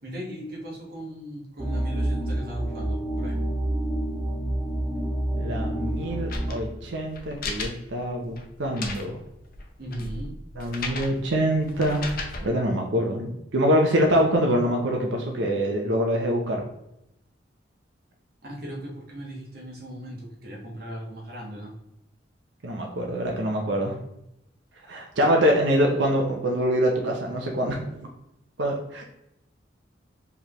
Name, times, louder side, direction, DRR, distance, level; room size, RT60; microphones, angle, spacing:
voice 1, 0.0-3.4 9.8-10.3 18.4-21.7, equal, 55° right, -2 dB, 1.4 m, -37 dB
sound 1, 1.6-6.6, right 1 dB, 10° right, 0.4 m, -28 dB
voice 2, 5.4-9.2 10.6-12.0 12.4-16.6 22.6-24.0 24.9-28.0 28.6-29.0, equal, 80° right, 0 dB, 0.7 m, -24 dB
sound 2, 5.5-12.5, left 3 dB, 50° left, 0.6 m, -37 dB
4.6 x 3.4 x 3.0 m, 0.83 s
head